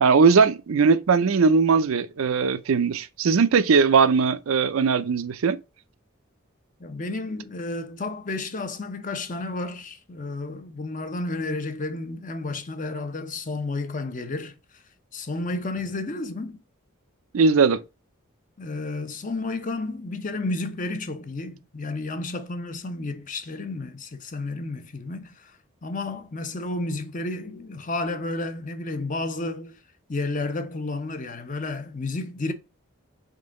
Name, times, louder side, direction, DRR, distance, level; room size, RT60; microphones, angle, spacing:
voice 1, 0.0-5.6 17.3-17.8, right 5 dB, 80° right, 0.5 m, -19 dB
voice 2, 6.8-14.8 15.1-16.6 18.6-29.8 30.1-32.5, left 2 dB, 35° left, 0.7 m, -31 dB
3.8 x 3.8 x 3.7 m
head